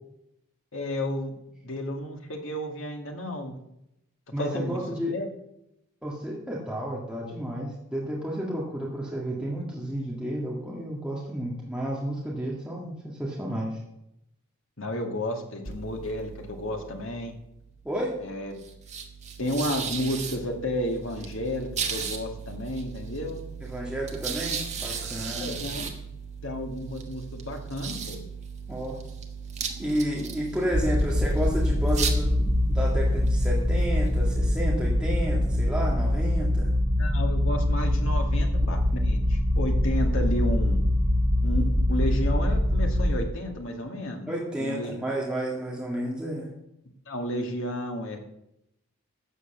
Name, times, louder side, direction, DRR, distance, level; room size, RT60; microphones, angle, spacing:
voice 1, 0.7-3.6 4.4-4.8 5.1-5.3 14.8-17.3 18.2-18.6 19.4-23.4 25.4-25.8 26.4-28.2 37.0-40.8 41.4-44.3 44.6-45.1 47.1-48.2, left 1 dB, 60° left, 3 dB, 2.1 m, -32 dB
voice 2, 4.3-5.1 6.0-13.8 17.8-18.2 23.6-25.6 28.7-29.0 29.8-36.7 44.3-46.5, equal, 5° right, -4 dB, 1.9 m, -31 dB
sound 1, 15.7-35.6, right 6 dB, 30° right, 1.5 m, -37 dB
sound 2, 30.7-43.1, left 1 dB, 65° right, 2.8 m, -24 dB
13.0 x 8.3 x 6.7 m, 0.83 s
head